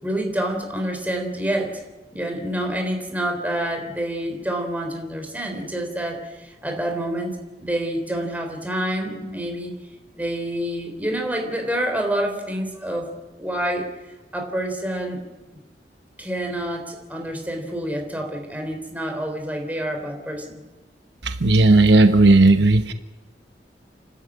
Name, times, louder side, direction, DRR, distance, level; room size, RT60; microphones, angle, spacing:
voice 1, 0.0-1.8 2.1-9.7 10.1-13.9 14.3-15.2 15.5-15.6 16.2-20.6, right 1 dB, 10° right, 2 dB, 3.8 m, -27 dB
voice 2, 21.2-22.9, right 2 dB, 75° right, 8 dB, 1.1 m, -14 dB
29.0 x 13.0 x 8.7 m, 1.2 s
head